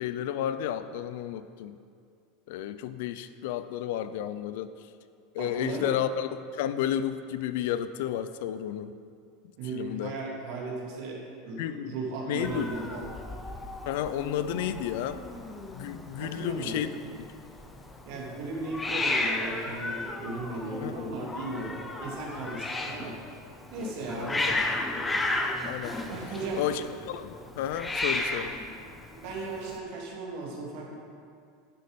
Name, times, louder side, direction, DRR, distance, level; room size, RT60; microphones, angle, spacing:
voice 1, 0.0-1.8 2.5-4.7 5.3-9.0 9.6-10.2 11.6-11.9 12.3-12.7 13.9-15.2 15.7-16.9 20.8-21.0 24.1-24.6 25.7-26.0 26.5-28.5, left 10 dB, 65° left, 12 dB, 0.6 m, -32 dB
voice 2, 5.4-5.9 9.6-11.2 11.4-13.1 16.2-16.9 18.0-23.2 23.7-24.6 26.1-26.6 29.1-30.9, right 3 dB, 55° right, -2 dB, 2.8 m, -36 dB
Hiss, 12.4-29.8, left 2 dB, 10° left, 0.8 m, -34 dB
11.0 x 9.5 x 5.3 m, 2.3 s
supercardioid pair, 160°, 0 cm